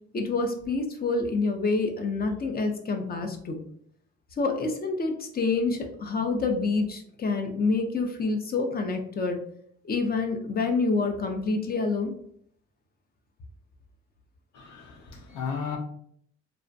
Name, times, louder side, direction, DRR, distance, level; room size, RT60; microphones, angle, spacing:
voice 1, 0.1-3.6 4.4-9.4 9.8-12.1, left 3 dB, 30° left, 0.5 m, -27 dB
voice 2, 14.5-15.8, left 6 dB, 85° left, 0.6 m, -34 dB
2.4 x 2.0 x 2.5 m
cardioid pair, 90°, 30 cm